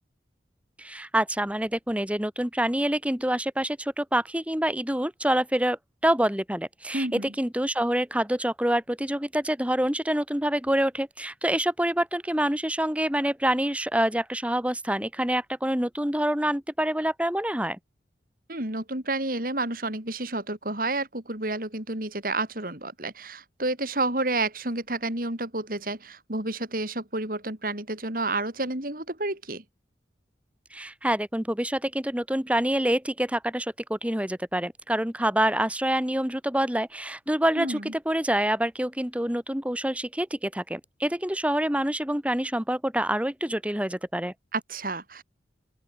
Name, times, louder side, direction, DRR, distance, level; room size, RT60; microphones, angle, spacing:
voice 1, 0.8-5.8 6.0-17.8 30.7-44.3, right 1 dB, 10° right, 2.0 m, -26 dB
voice 2, 6.9-7.3 18.5-29.6 37.5-37.9 44.5-45.2, right 2 dB, 50° right, 4.9 m, -30 dB
open air
head